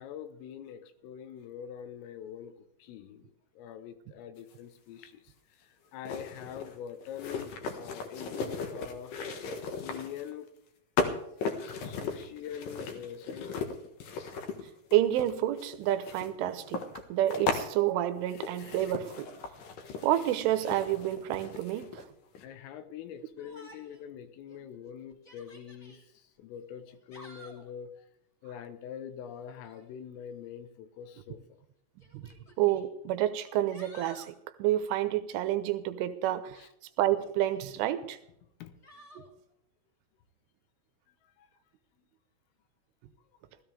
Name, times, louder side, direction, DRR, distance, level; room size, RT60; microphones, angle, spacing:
voice 1, 0.0-9.2 9.8-10.5 11.8-13.7 22.4-28.1 28.4-31.6 36.6-36.7 38.6-39.1 41.1-41.5 42.0-42.1, left 9 dB, 80° left, 9 dB, 3.7 m, -44 dB
sound 1, 4.5-4.6 6.1-10.3 11.0-17.7 18.3-22.1 22.4-22.5, left 4 dB, 65° left, 2.3 m, -37 dB
voice 2, 14.9-16.8 17.1-19.3 20.0-22.0 32.1-32.2 32.6-34.3 34.6-36.6 37.0-38.2 39.2-39.3, right 13 dB, 80° right, 11 dB, 3.3 m, -29 dB
Yell, 23.4-24.1 24.5-24.6 25.1-26.0 26.9-27.7 29.4-29.9 31.0-31.1 32.0-32.8 33.4-34.3 37.0-37.7 38.8-39.3, left 1 dB, 25° left, 2.1 m, -54 dB
16.5 x 14.5 x 3.5 m, 0.77 s
omnidirectional pair, 5.9 m